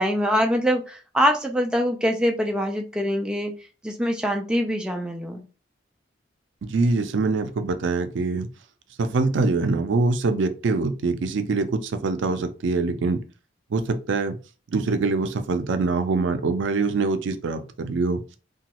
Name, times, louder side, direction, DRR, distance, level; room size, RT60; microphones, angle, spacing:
voice 1, 0.0-3.5 3.8-5.4, equal, 5° right, 0.3 m, -24 dB
voice 2, 6.7-8.5 9.0-13.2 13.7-14.4 14.7-18.2, right 3 dB, 90° right, 0.4 m, -24 dB
2.9 x 2.3 x 2.9 m
head